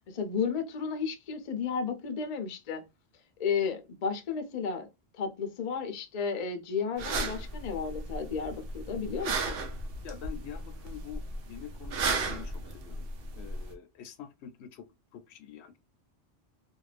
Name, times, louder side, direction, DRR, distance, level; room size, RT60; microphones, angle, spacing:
voice 1, 0.1-2.8 3.4-4.9 5.2-9.6, left 6 dB, 50° left, 0.5 m, -33 dB
sound 1, 7.0-13.7, right 3 dB, 65° right, 0.8 m, -35 dB
voice 2, 10.0-13.1 13.3-14.9 15.1-15.8, left 9 dB, 75° left, 0.8 m, -46 dB
2.5 x 2.3 x 3.2 m
omnidirectional pair, 1.1 m